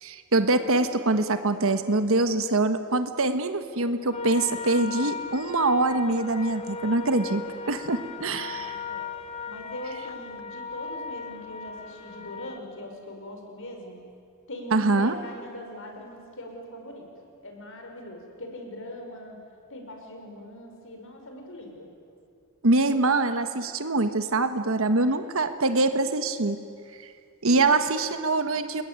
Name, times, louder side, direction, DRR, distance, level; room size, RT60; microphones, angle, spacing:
voice 1, 0.0-8.8 14.7-15.2 22.6-26.6 27.4-28.8, right 2 dB, 70° right, 9 dB, 1.3 m, -24 dB
sound 1, 4.1-12.6, left 4 dB, 30° left, 1.4 m, -37 dB
voice 2, 8.2-9.1 9.5-14.0 14.5-17.1 17.4-19.4 19.7-21.9 22.9-23.2 27.5-27.7, left 1 dB, 65° left, 3 dB, 5.6 m, -41 dB
29.0 x 21.0 x 9.6 m, 2.3 s
head